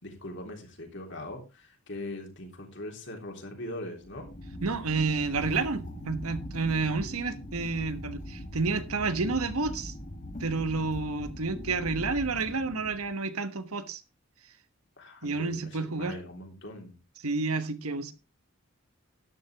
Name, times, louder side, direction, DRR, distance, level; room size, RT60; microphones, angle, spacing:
voice 1, 0.0-4.3 15.0-16.9, left 1 dB, 55° left, 3.4 m, -41 dB
sound 1, 4.0-13.1, left 1 dB, 35° left, 2.3 m, -41 dB
voice 2, 4.6-9.9 10.4-14.0 15.2-16.2 17.2-18.1, right 4 dB, 85° right, 1.3 m, -30 dB
13.0 x 10.0 x 3.5 m
head